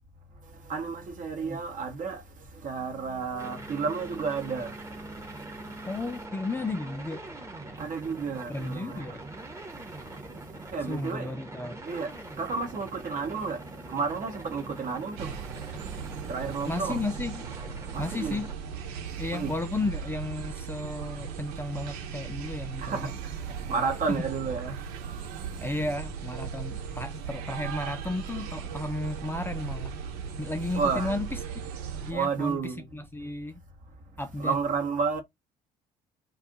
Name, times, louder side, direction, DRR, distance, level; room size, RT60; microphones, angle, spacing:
voice 1, 0.6-2.2 2.5-4.8 5.1-6.1 7.7-9.1 9.7-11.3 11.9-17.0 17.9-18.4 19.3-19.6 22.8-24.8 25.1-25.8 30.7-31.2 32.1-32.8 34.4-35.2, right 5 dB, 40° right, 0.9 m, -32 dB
sound 1, 3.4-18.5, right 2 dB, 15° right, 1.0 m, -43 dB
voice 2, 5.9-7.2 8.5-9.2 10.9-11.8 16.6-17.4 18.0-18.5 19.2-23.1 23.6-24.3 25.6-29.9 30.4-31.3 32.1-33.6 34.2-34.6, left 2 dB, 10° left, 0.5 m, -33 dB
sound 2, 15.2-32.1, right 7 dB, 75° right, 1.1 m, -37 dB
2.5 x 2.3 x 3.8 m
figure-of-eight pair, 50°, 20 cm